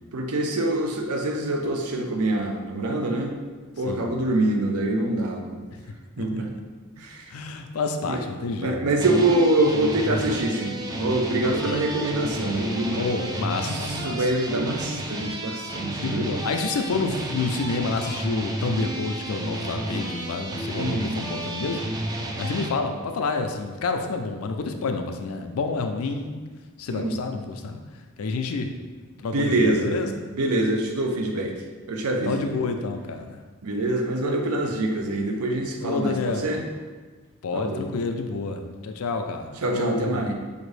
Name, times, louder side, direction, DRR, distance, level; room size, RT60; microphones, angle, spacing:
voice 1, 0.1-3.3 3.8-5.6 6.2-6.5 7.1-7.2 8.1-8.2 8.6-13.1 14.0-16.3 20.8-21.1 26.9-27.1 29.3-31.5 31.9-32.5 33.6-36.6 37.5-37.9 39.6-40.3, right 2 dB, 85° right, 3 dB, 0.6 m, -25 dB
voice 2, 7.3-8.8 11.6-11.9 12.9-14.3 15.9-21.8 22.4-26.4 26.8-27.8 28.2-28.7 29.2-30.3 32.3-33.4 35.8-36.6 37.4-40.3, left 4 dB, 75° left, 5 dB, 0.4 m, -29 dB
sound 1, 9.0-22.7, right 1 dB, 15° right, 0.3 m, -31 dB
4.9 x 2.6 x 3.2 m, 1.4 s
head